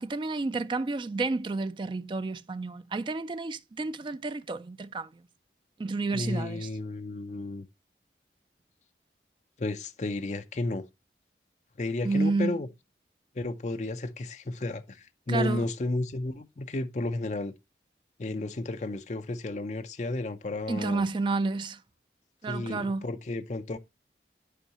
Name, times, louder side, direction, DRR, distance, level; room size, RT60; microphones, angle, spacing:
voice 1, 0.0-5.2 5.8-6.7 12.0-12.6 15.3-15.7 20.7-21.8 22.4-23.1, right 3 dB, 25° right, 0.3 m, -30 dB
voice 2, 6.1-7.7 9.6-10.8 11.8-12.7 13.4-17.5 18.2-21.0 22.5-23.8, left 2 dB, 40° left, 0.5 m, -32 dB
10.0 x 4.6 x 2.8 m
head